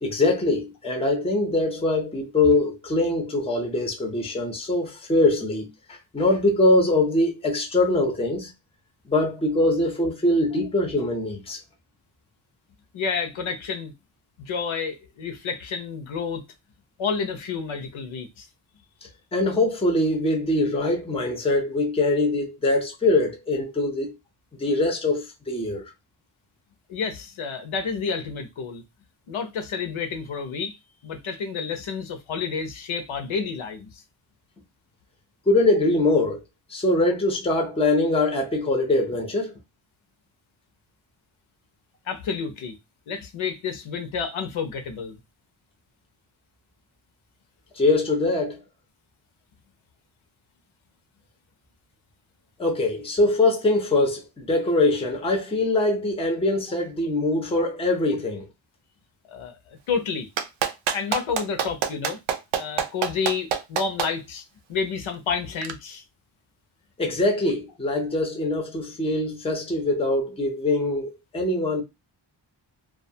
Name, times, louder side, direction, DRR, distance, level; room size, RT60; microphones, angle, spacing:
voice 1, 0.0-8.5 9.1-11.6 19.3-24.2 24.6-25.9 35.5-36.4 36.7-39.5 47.8-48.6 52.6-58.5 67.0-71.8, left 2 dB, 15° left, 0.5 m, -23 dB
voice 2, 12.9-13.9 14.4-16.4 17.0-18.5 26.9-28.8 29.3-30.8 31.0-34.0 42.0-42.8 43.1-45.2 59.3-60.3 60.9-62.2 62.5-66.0, left 5 dB, 90° left, 0.7 m, -30 dB
Clapping, 60.4-64.1 65.6-65.7, right 8 dB, 75° right, 0.5 m, -25 dB
2.4 x 2.3 x 2.6 m
wide cardioid pair, 160°, 47 cm